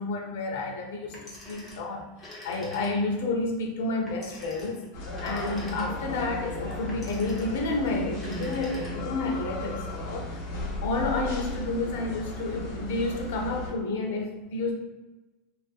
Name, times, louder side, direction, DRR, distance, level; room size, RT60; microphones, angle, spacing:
voice 1, 0.0-2.1 2.4-4.8 5.2-10.4 10.8-14.7, left 2 dB, 85° left, 1 dB, 0.6 m, -30 dB
Telephone, 1.1-3.3 4.1-6.2 6.9-7.7 8.1-9.3, left 1 dB, 10° left, 0.6 m, -45 dB
sound 1, 4.9-13.7, left 1 dB, 55° left, 0.9 m, -35 dB
2.6 x 2.4 x 2.3 m, 1.1 s
supercardioid pair, 175°, 0 cm